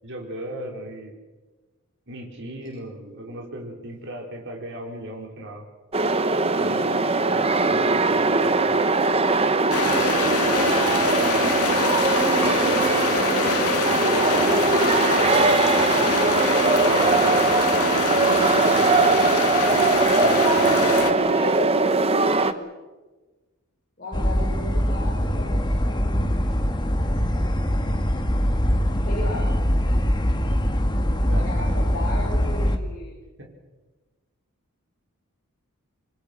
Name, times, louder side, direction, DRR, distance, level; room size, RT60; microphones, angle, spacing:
voice 1, 0.0-1.1 2.1-5.6 6.6-6.8 7.2-8.8 15.9-16.2 16.5-17.6 18.3-19.1 20.2-20.8 31.2-31.5 33.4-33.5, right 1 dB, 55° right, 1 dB, 5.1 m, -37 dB
sound 1, 5.9-22.5, right 3 dB, 25° right, 1.0 m, -20 dB
voice 2, 6.5-7.1 10.2-15.8 20.0-22.7 24.0-27.0 29.1-29.5 31.3-33.1, left 1 dB, 40° left, -4 dB, 6.7 m, -35 dB
sound 2, 9.7-21.1, left 5 dB, 85° left, 2.2 m, -25 dB
sound 3, 24.1-32.8, equal, 20° left, 1.7 m, -23 dB
27.5 x 23.5 x 6.3 m, 1.2 s
head